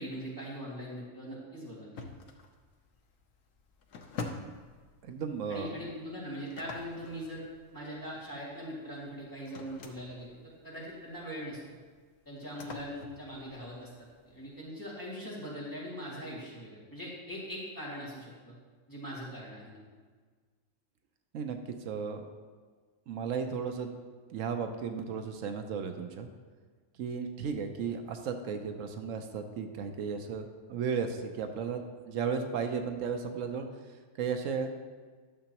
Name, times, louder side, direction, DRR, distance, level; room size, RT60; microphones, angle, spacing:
voice 1, 0.0-1.9 5.5-7.4 7.7-11.8 12.3-13.9 14.2-18.6 18.9-19.8, equal, 15° left, -7 dB, 2.3 m, -41 dB
sound 1, 2.0-14.6, left 3 dB, 75° left, 1.1 m, -47 dB
voice 2, 5.0-5.8 21.3-22.2 23.1-23.9 24.3-26.3 27.0-33.7 34.2-34.7, right 6 dB, 80° right, 6 dB, 1.0 m, -34 dB
11.0 x 6.8 x 2.9 m, 1.5 s
omnidirectional pair, 1.3 m